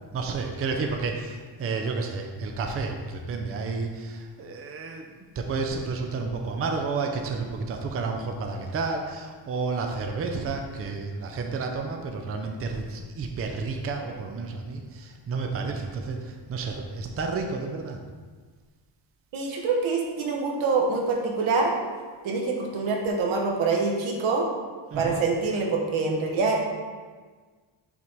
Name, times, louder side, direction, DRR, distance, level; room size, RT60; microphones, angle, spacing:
voice 1, 0.1-18.0 24.9-25.2, right 4 dB, 30° right, 3 dB, 0.5 m, -31 dB
voice 2, 19.3-21.7 22.2-24.5 25.0-26.6, right 4 dB, 85° right, 0 dB, 1.2 m, -25 dB
6.0 x 4.0 x 4.5 m, 1.5 s
cardioid pair, 155°, 46 cm